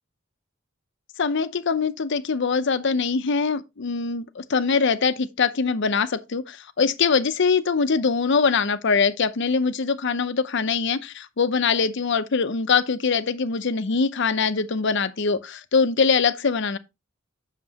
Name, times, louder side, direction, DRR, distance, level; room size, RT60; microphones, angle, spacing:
voice 1, 1.2-16.8, left 5 dB, 65° left, 0.7 m, -23 dB
7.6 x 6.6 x 2.8 m
head